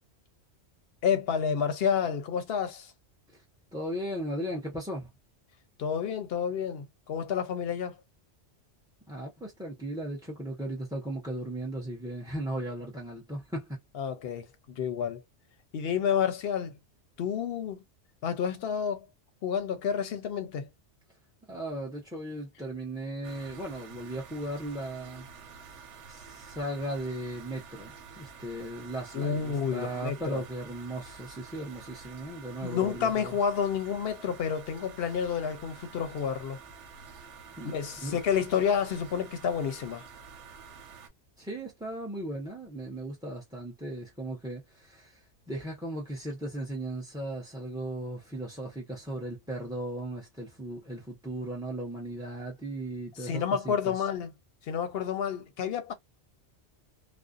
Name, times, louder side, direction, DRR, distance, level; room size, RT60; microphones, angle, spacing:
voice 1, 1.0-2.9 5.8-8.0 13.9-15.2 15.7-16.8 17.2-17.8 18.2-19.0 19.4-20.7 29.1-30.4 32.6-36.6 37.6-40.1 53.2-54.3 54.7-55.9, left 7 dB, 65° left, 0.7 m, -30 dB
voice 2, 3.7-5.1 9.1-13.8 21.5-25.6 26.1-33.3 37.6-37.7 38.0-38.2 41.4-54.1, right 1 dB, 5° right, 0.4 m, -37 dB
sound 1, 23.2-41.1, right 6 dB, 85° right, 1.0 m, -49 dB
2.5 x 2.0 x 2.3 m
omnidirectional pair, 1.2 m